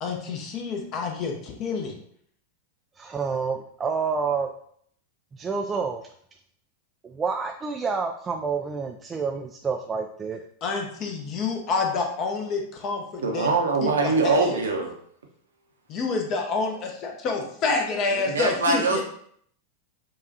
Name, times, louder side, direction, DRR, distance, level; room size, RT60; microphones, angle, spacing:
voice 1, 0.0-1.9 10.6-13.5 13.8-14.6 15.9-19.0, left 4 dB, 35° left, 2 dB, 0.8 m, -28 dB
voice 2, 3.0-4.5 5.3-6.0 7.0-10.4, right 5 dB, 20° right, 4 dB, 0.3 m, -28 dB
voice 3, 13.2-14.9 18.1-19.0, right 3 dB, 70° right, 1 dB, 0.8 m, -23 dB
6.7 x 2.4 x 2.7 m, 0.65 s
figure-of-eight pair, 90°, 0 cm